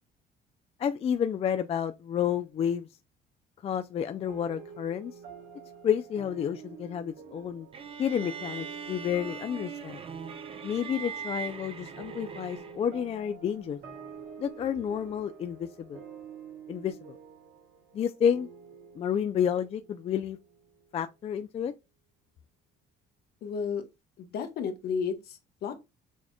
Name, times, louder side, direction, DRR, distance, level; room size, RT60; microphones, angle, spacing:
voice 1, 0.8-2.9 3.6-5.1 5.8-7.7 8.0-10.0 10.6-13.8 14.4-16.0 16.7-17.2 17.9-18.5 19.0-20.4 20.9-21.7, left 8 dB, 35° left, 0.3 m, -30 dB
sound 1, 4.3-21.1, right 6 dB, 70° right, 1.4 m, -48 dB
sound 2, 7.7-13.0, right 7 dB, 35° right, 0.7 m, -41 dB
voice 2, 23.4-23.8 24.2-25.7, left 6 dB, 70° left, 1.0 m, -33 dB
6.3 x 2.9 x 2.2 m
cardioid pair, 110°, 17 cm